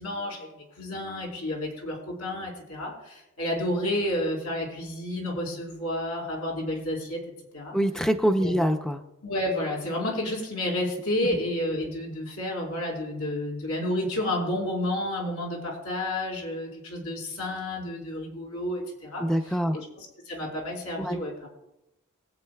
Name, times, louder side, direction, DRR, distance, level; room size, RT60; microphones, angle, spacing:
voice 1, 0.0-7.2 7.5-7.8 8.4-8.6 9.2-21.5, left 1 dB, 85° left, -2 dB, 4.1 m, -31 dB
voice 2, 7.7-9.0 19.2-19.8 21.0-21.2, equal, 5° left, 5 dB, 0.5 m, -24 dB
23.5 x 8.3 x 2.3 m, 0.91 s
head